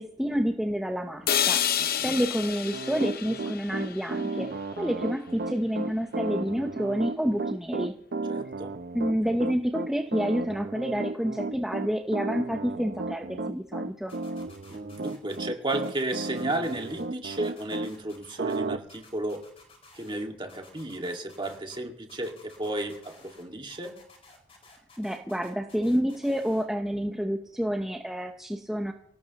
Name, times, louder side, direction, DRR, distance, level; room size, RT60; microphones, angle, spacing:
voice 1, 0.0-1.7 2.0-7.9 8.9-14.1 25.0-28.9, equal, ahead, 3 dB, 0.8 m, -29 dB
sound 1, 1.3-5.3, left 9 dB, 50° left, 0.7 m, -30 dB
voice 2, 1.8-2.1 8.3-8.7 14.7-19.4 19.9-23.9, right 1 dB, 25° right, 2 dB, 2.0 m, -33 dB
Piano, 2.7-17.9 18.4-18.8, right 3 dB, 55° right, 0.6 m, -33 dB
sound 2, 14.1-15.4 15.7-17.0 17.3-18.6 18.9-20.2 20.5-21.8 22.1-23.4 23.7-26.6, left 3 dB, 30° left, 5.3 m, -54 dB
25.0 x 18.0 x 3.0 m, 0.73 s
head